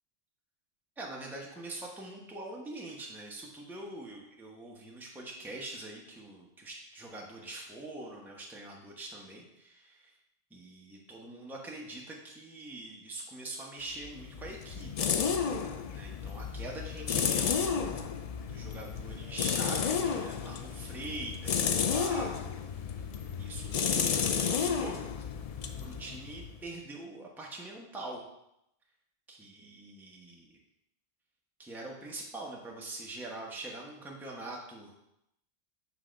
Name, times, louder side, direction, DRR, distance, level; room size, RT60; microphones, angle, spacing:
voice 1, 1.0-10.1 10.5-15.1 15.9-17.9 18.4-23.0 23.4-25.0 25.8-28.2 29.3-30.6 31.6-34.9, right 2 dB, ahead, -2 dB, 0.9 m, -44 dB
sound 1, 14.0-26.7, left 6 dB, 80° left, 0.3 m, -32 dB
6.2 x 3.7 x 5.1 m, 0.81 s
omnidirectional pair, 1.2 m